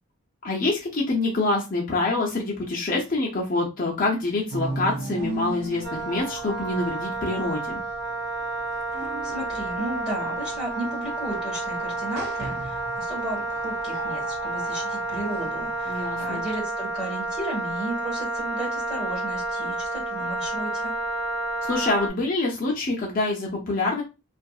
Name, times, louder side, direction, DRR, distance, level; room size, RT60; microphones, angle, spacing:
voice 1, 0.4-7.8 15.9-16.4 21.6-24.0, left 2 dB, 40° left, -3 dB, 0.5 m, -26 dB
sound 1, 4.5-16.6, right 2 dB, 50° right, 0.4 m, -37 dB
Wind instrument woodwind instrument, 5.8-22.1, right 2 dB, 85° right, 1.3 m, -30 dB
voice 2, 8.9-20.9, right 1 dB, 5° right, -6 dB, 1.3 m, -34 dB
2.6 x 2.5 x 2.3 m, 0.28 s
head